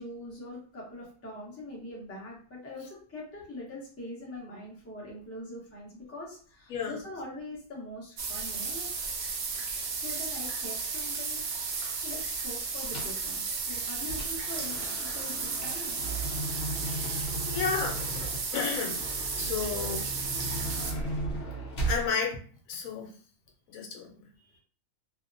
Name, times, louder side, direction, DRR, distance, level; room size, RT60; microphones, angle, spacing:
voice 1, 0.0-8.9 9.9-11.4 11.9-16.0 18.5-18.9 24.4-24.6, left 1 dB, 15° left, -3 dB, 0.5 m, -43 dB
sound 1, 8.2-20.9, right 4 dB, 65° right, 0.7 m, -34 dB
sound 2, 12.9-13.2 13.7-22.1, right 2 dB, 55° left, 0.9 m, -36 dB
voice 2, 16.8-19.0 19.4-20.1 21.9-22.4 22.7-23.1 23.7-24.3, left 6 dB, 80° left, 1 dB, 1.0 m, -33 dB
2.8 x 2.0 x 2.5 m, 0.43 s
omnidirectional pair, 1.4 m